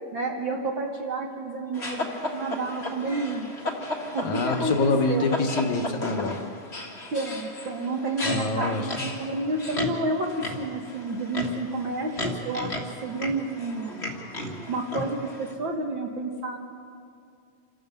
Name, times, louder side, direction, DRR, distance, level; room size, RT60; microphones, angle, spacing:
voice 1, 0.1-3.5 4.1-5.3 7.1-14.0 14.7-16.6, right 2 dB, 65° right, 1 dB, 1.2 m, -30 dB
sound 1, 1.7-15.5, left 1 dB, 35° left, 1.1 m, -34 dB
voice 2, 4.2-6.4 8.2-9.1, left 3 dB, 65° left, 4 dB, 2.1 m, -26 dB
27.0 x 14.5 x 6.8 m, 2.4 s
omnidirectional pair, 4.0 m